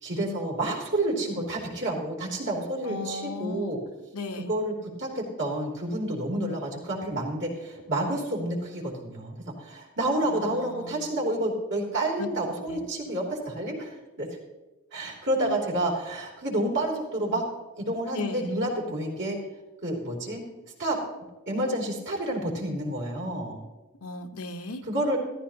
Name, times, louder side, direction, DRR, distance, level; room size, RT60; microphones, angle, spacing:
voice 1, 0.0-3.8 4.5-14.4 14.9-17.4 17.8-19.4 19.8-20.4 20.8-21.0 21.5-23.6 24.9-25.2, right 1 dB, 55° right, -2 dB, 3.2 m, -29 dB
voice 2, 2.8-3.8 4.1-4.5 10.2-11.1 12.2-12.3 12.7-12.8 15.4-15.6 18.1-18.5 24.0-24.8, left 3 dB, 75° left, 5 dB, 1.1 m, -36 dB
15.0 x 14.5 x 2.9 m, 1.1 s
head